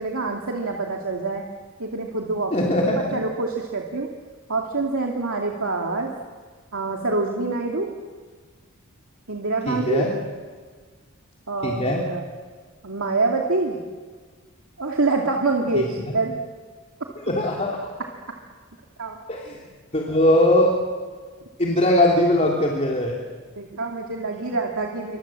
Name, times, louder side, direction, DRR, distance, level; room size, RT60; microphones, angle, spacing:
voice 1, 0.0-1.5 1.8-2.6 2.8-4.1 4.5-6.1 6.7-7.9 9.3-10.1 11.5-12.2 12.8-13.8 14.8-16.4 19.0-19.2 23.6-25.2, right 3 dB, 85° right, 0 dB, 2.4 m, -26 dB
voice 2, 2.5-3.1 9.7-10.1 11.6-12.0 15.7-15.8 17.3-17.9 19.3-19.5 19.9-20.7 21.6-23.2, left 1 dB, 35° left, -2 dB, 3.2 m, -20 dB
28.0 x 25.5 x 7.6 m, 1.5 s
head